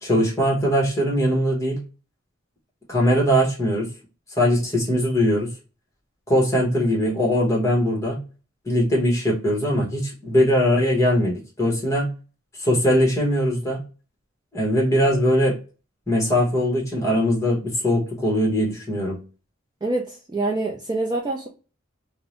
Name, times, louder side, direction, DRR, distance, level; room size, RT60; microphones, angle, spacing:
voice 1, 0.0-1.8 2.9-3.9 4.4-5.5 6.3-8.2 8.7-12.1 12.6-13.8 14.5-15.6 16.1-19.2, equal, 15° left, -2 dB, 0.9 m, -21 dB
voice 2, 19.8-21.5, right 2 dB, 20° right, -1 dB, 0.3 m, -26 dB
2.7 x 2.0 x 2.9 m, 0.34 s
head